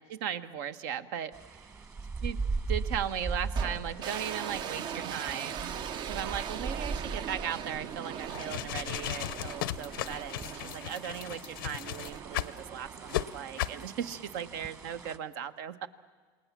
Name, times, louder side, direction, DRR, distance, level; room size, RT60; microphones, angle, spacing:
voice 1, 0.0-1.8 2.2-2.4 2.7-5.7 6.1-15.9, right 9 dB, 70° right, 12 dB, 1.2 m, -37 dB
sound 1, 1.3-15.2, right 4 dB, 25° right, 1.6 m, -39 dB
sound 2, 3.6-14.8, right 8 dB, 45° right, 0.7 m, -41 dB
sound 3, 8.2-12.6 13.1-13.2 13.6-13.8, left 15 dB, 90° left, 0.7 m, -35 dB
28.0 x 19.5 x 7.4 m, 1.5 s
supercardioid pair, 120°, 11 cm